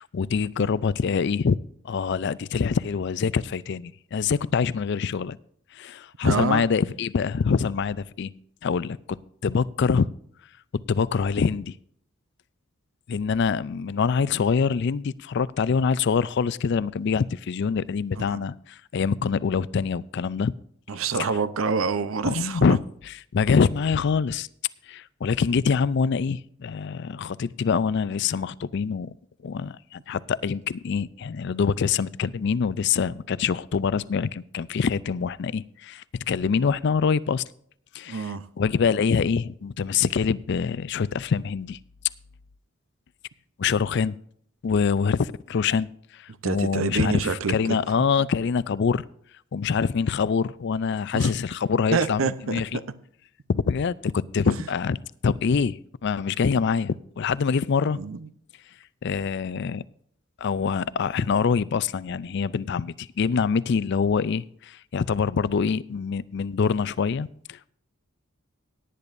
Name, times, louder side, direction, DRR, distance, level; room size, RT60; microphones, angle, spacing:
voice 1, 0.0-1.6 1.8-5.4 5.7-8.3 8.6-9.2 9.4-10.1 10.9-11.7 13.1-20.5 22.2-22.8 23.3-24.5 24.9-29.1 29.4-37.4 37.9-41.8 43.6-44.2 44.6-45.9 46.1-47.2 47.5-49.0 49.5-52.2 52.5-52.8 53.5-55.0 55.2-58.0 59.0-59.8 60.4-67.7, left 5 dB, 60° left, 0.4 m, -25 dB
voice 2, 6.2-6.6 18.2-18.5 20.9-22.7 38.1-38.4 46.4-47.8 51.1-51.3 51.9-52.6 58.0-58.3, right 4 dB, 80° right, 0.7 m, -27 dB
17.5 x 10.0 x 2.6 m
head